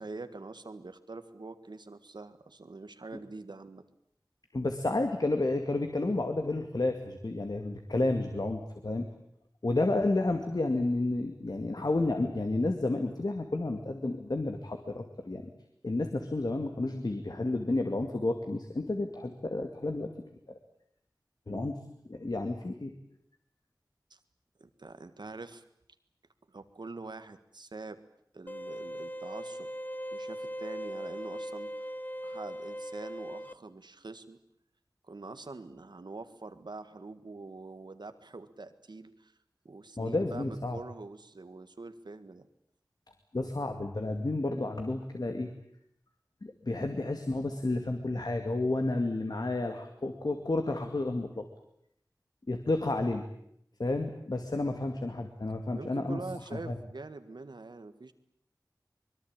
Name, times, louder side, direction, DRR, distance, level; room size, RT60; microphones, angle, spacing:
voice 1, 0.0-3.8 21.5-21.8 24.1-24.2 24.6-25.6 26.5-28.0 28.3-29.7 30.1-31.9 32.2-34.4 35.0-39.3 39.6-42.5 55.7-58.1, right 3 dB, 90° right, 10 dB, 1.8 m, -45 dB
voice 2, 4.5-9.1 9.6-15.5 15.8-20.1 20.5-20.6 21.5-21.8 22.1-22.9 40.0-40.8 43.3-45.5 46.4-51.4 52.5-53.2 53.8-56.2 56.5-56.8, left 2 dB, 65° left, 5 dB, 2.3 m, -31 dB
sound 1, 28.5-33.5, equal, 25° left, 1.0 m, -39 dB
24.5 x 22.0 x 8.9 m, 0.71 s
wide cardioid pair, 55°, 7 cm